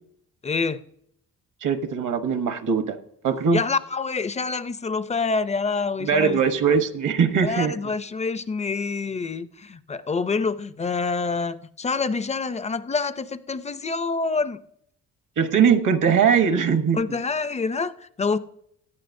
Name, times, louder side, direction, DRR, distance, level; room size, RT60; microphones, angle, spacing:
voice 1, 0.4-0.8 3.5-6.4 7.4-14.6 16.9-18.4, left 4 dB, 20° left, 0.4 m, -26 dB
voice 2, 1.6-3.0 3.2-3.6 6.0-7.8 15.4-17.2, right 6 dB, 65° right, 1.0 m, -21 dB
17.0 x 11.5 x 2.6 m
cardioid pair, 125°, 34 cm